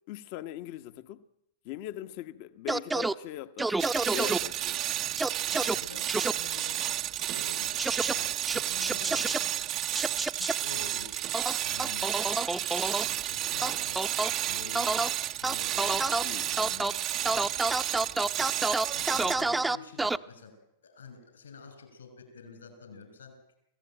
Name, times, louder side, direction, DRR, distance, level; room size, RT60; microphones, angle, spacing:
voice 1, 0.1-1.2 1.6-4.8 16.2-16.5, left 13 dB, 55° left, 1.1 m, -41 dB
sound 1, 2.7-3.1 3.6-4.4 5.2-5.7 6.1-6.3 7.8-8.1 8.5-9.4 9.9-10.5 11.3-13.0 13.6-14.3 14.7-15.1 15.4-16.2 16.6-16.9 17.3-20.2, right 2 dB, 10° right, 0.8 m, -28 dB
sound 2, 3.8-19.5, right 13 dB, 40° right, 0.8 m, -32 dB
voice 2, 5.5-7.8 8.1-9.9 10.3-11.2 11.6-14.1 14.4-16.2 16.5-17.0 18.2-20.5 20.8-23.4, left 4 dB, 85° left, 6.0 m, -48 dB
26.0 x 16.0 x 9.0 m
hypercardioid pair, 100°, 0 cm